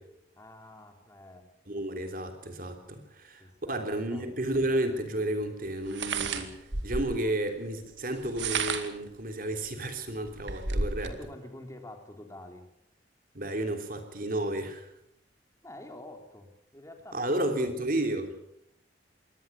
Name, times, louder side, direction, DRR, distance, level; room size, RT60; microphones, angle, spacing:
voice 1, 0.4-1.4 3.4-3.8 4.1-4.3 11.1-12.6 15.6-16.5 16.7-17.9, left 1 dB, 15° left, 4 dB, 3.3 m, -47 dB
voice 2, 1.7-11.1 13.3-14.9 17.1-18.4, right 1 dB, 50° right, 6 dB, 3.4 m, -32 dB
sound 1, 4.6-4.7 5.9-7.2 8.2-9.0 9.7-9.8 10.1-11.2, right 4 dB, 85° right, 2.2 m, -32 dB
23.0 x 17.5 x 7.1 m, 0.76 s
head